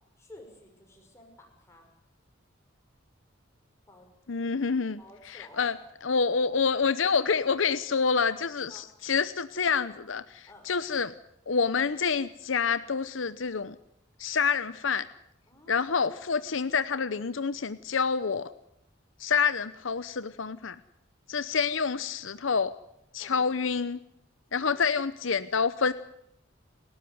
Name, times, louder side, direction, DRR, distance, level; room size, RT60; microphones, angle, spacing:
voice 1, 0.2-1.8 3.9-4.1 5.0-5.8 8.7-8.8 10.5-10.7 15.5-15.9 23.2-23.6 24.6-25.0, left 1 dB, 15° left, 1 dB, 6.2 m, -52 dB
voice 2, 4.3-5.0 5.2-5.8 6.0-11.1 11.5-13.8 14.2-15.1 15.7-18.5 19.2-20.8 21.3-22.7 23.1-24.0 24.5-25.9, left 5 dB, 75° left, 14 dB, 0.8 m, -27 dB
29.5 x 13.0 x 9.6 m, 0.79 s
head